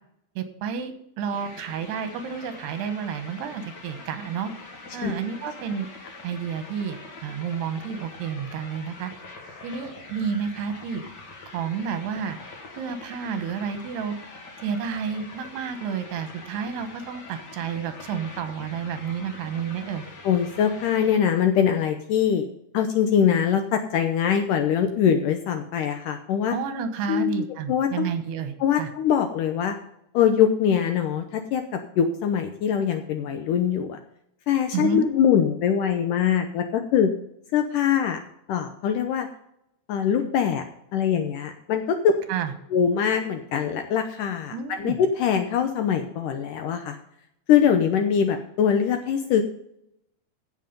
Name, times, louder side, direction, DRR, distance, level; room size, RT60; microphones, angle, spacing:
voice 1, 0.4-4.5 4.9-5.9 6.2-9.1 9.6-11.0 11.5-12.4 12.8-14.2 14.6-20.0 26.5-28.9 34.7-35.0 42.3-42.5 44.5-45.0, right 7 dB, 85° right, 8 dB, 3.3 m, -30 dB
sound 1, 1.3-21.2, left 3 dB, 45° left, 1.3 m, -44 dB
voice 2, 20.2-22.5 22.7-26.6 27.1-28.1 28.6-29.8 30.1-34.0 34.5-37.1 37.5-38.2 38.5-39.3 39.9-40.6 40.9-42.1 42.7-47.0 47.5-49.4, left 8 dB, 75° left, 6 dB, 2.0 m, -23 dB
16.0 x 5.8 x 5.2 m, 0.74 s
omnidirectional pair, 4.7 m